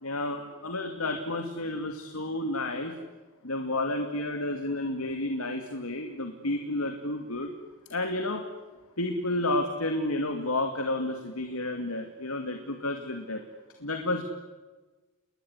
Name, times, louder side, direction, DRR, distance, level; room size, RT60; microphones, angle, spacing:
voice 1, 0.0-2.9 3.4-7.5 7.9-8.5 9.0-13.4 13.8-14.2, left 2 dB, 85° left, 5 dB, 2.4 m, -31 dB
29.5 x 21.0 x 9.7 m, 1.3 s
head